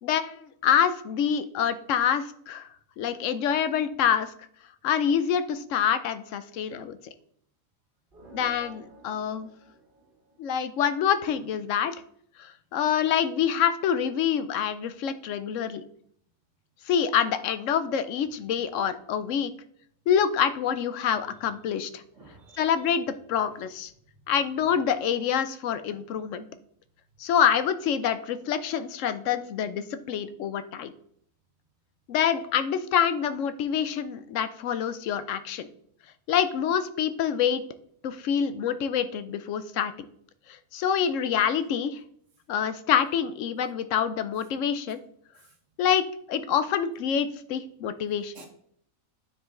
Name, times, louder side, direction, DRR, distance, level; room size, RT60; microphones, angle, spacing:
voice 1, 0.0-2.7 3.0-4.3 4.8-7.0 8.3-9.5 10.4-12.0 12.4-15.8 16.9-19.5 20.1-22.0 22.6-23.9 24.3-26.4 27.2-30.9 32.1-35.7 36.3-37.6 38.0-39.9 40.7-42.0 42.5-45.0 45.8-48.3, left 8 dB, 70° left, 12 dB, 0.9 m, -26 dB
sound 1, 8.1-10.8, right 2 dB, 40° right, 1.6 m, -51 dB
voice 2, 22.1-22.7 23.4-23.6 29.3-29.4 45.3-45.6 47.9-48.5, right 3 dB, 60° right, 3 dB, 1.7 m, -52 dB
9.5 x 4.9 x 3.7 m, 0.66 s
omnidirectional pair, 1.5 m